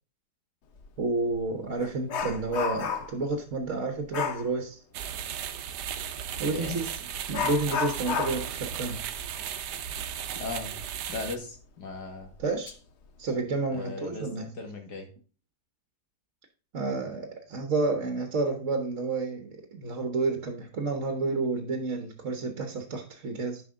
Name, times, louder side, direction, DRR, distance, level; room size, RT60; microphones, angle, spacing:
Dog, 0.8-0.9 1.3-3.3 4.1-4.5 6.4-6.6 7.3-10.6 10.9-11.0 11.6-11.7 12.3-12.7 13.1-13.3, left 6 dB, 50° left, 0.9 m, -33 dB
voice 1, 1.0-4.8 6.4-6.9 7.3-9.0 12.4-12.8 13.2-14.5 16.7-23.6, right 3 dB, 50° right, 5 dB, 1.3 m, -30 dB
sound 1, 4.9-11.4, right 9 dB, 75° right, 1.3 m, -36 dB
voice 2, 6.4-6.8 10.4-10.7 11.1-12.3 13.7-15.1, left 3 dB, 70° left, 3 dB, 2.4 m, -37 dB
11.0 x 5.3 x 3.7 m, 0.37 s
omnidirectional pair, 1.8 m